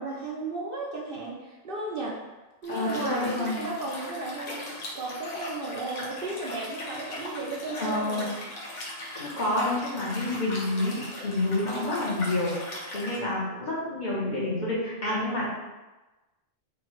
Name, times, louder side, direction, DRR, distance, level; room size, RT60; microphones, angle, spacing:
voice 1, 0.0-2.2 2.6-8.3, right 2 dB, 55° right, -3 dB, 0.7 m, -34 dB
Liquid, 2.6-13.2, left 1 dB, 80° left, 1.2 m, -39 dB
voice 2, 2.7-3.6 7.8-8.3 9.1-15.5, left 2 dB, 40° left, -6 dB, 1.0 m, -28 dB
4.1 x 2.8 x 3.1 m, 1.1 s
omnidirectional pair, 1.2 m